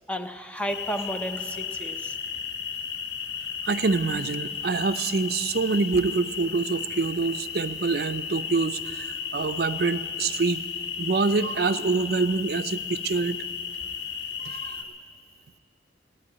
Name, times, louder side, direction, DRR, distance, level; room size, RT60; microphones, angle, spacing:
voice 1, 0.1-2.1, equal, 5° left, 7 dB, 0.5 m, -32 dB
sound 1, 0.7-14.8, left 7 dB, 70° left, 1.3 m, -34 dB
voice 2, 3.7-10.6 11.0-13.4 14.4-14.8, right 4 dB, 55° right, 11 dB, 0.4 m, -26 dB
16.0 x 9.4 x 9.5 m, 2.2 s
head